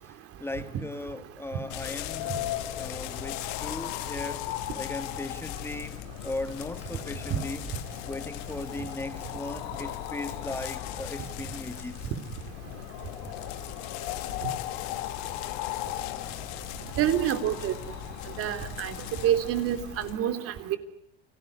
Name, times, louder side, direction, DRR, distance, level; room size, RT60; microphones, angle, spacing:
voice 1, 0.0-2.4 2.8-12.1 18.9-19.0, left 2 dB, 10° left, 1.6 m, -38 dB
sound 1, 1.7-20.2, left 15 dB, 70° left, 2.2 m, -37 dB
voice 2, 17.0-17.7 18.4-19.0 19.2-20.8, right 11 dB, 50° right, 3.4 m, -27 dB
29.5 x 20.0 x 9.6 m
supercardioid pair, 115°, 29 cm